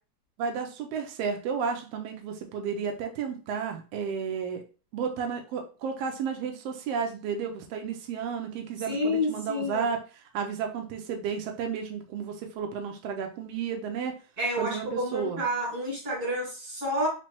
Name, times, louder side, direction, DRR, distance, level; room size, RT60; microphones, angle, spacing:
voice 1, 0.4-4.6 4.9-14.1 14.6-15.4, right 6 dB, 90° right, 3 dB, 1.3 m, -32 dB
voice 2, 8.9-9.9 14.4-17.1, left 1 dB, 35° right, -4 dB, 1.9 m, -29 dB
4.3 x 3.1 x 2.9 m, 0.36 s
omnidirectional pair, 3.4 m